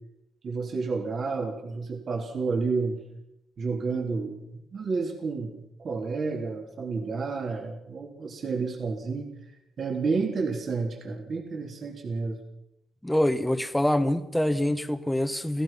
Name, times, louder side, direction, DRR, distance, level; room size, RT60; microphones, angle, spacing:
voice 1, 0.4-3.0 3.6-5.5 5.8-9.3 9.8-12.4, right 4 dB, 45° right, 3 dB, 3.4 m, -30 dB
voice 2, 13.0-15.6, left 1 dB, 5° left, 10 dB, 1.4 m, -25 dB
29.0 x 16.0 x 5.8 m, 0.81 s
cardioid pair, 130°, 0 cm